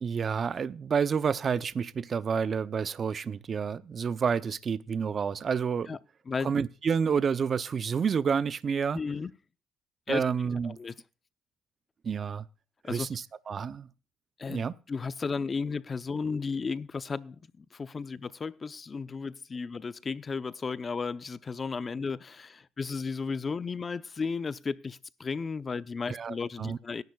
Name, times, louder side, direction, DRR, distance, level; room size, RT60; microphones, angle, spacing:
voice 1, 0.0-5.9 6.4-9.0 10.1-10.8 12.0-12.4 12.8-13.9 14.5-14.7 26.1-26.8, right 6 dB, 45° right, 0.7 m, -29 dB
voice 2, 8.9-9.3 10.1-10.2 10.6-10.9 12.8-13.1 14.4-27.0, left 5 dB, 35° left, 0.8 m, -34 dB
19.0 x 11.0 x 2.4 m
supercardioid pair, 80°, 0 cm